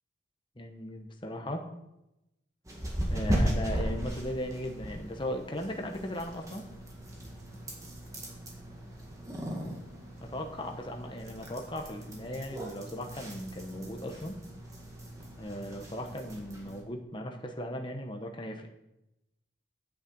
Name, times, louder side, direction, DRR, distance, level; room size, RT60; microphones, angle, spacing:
voice 1, 0.6-1.7 3.0-6.7 10.2-14.4 15.4-18.7, left 1 dB, 25° left, 3 dB, 1.0 m, -37 dB
sound 1, 2.7-16.8, equal, 15° right, 1.8 m, -37 dB
8.7 x 6.5 x 7.9 m, 0.89 s
head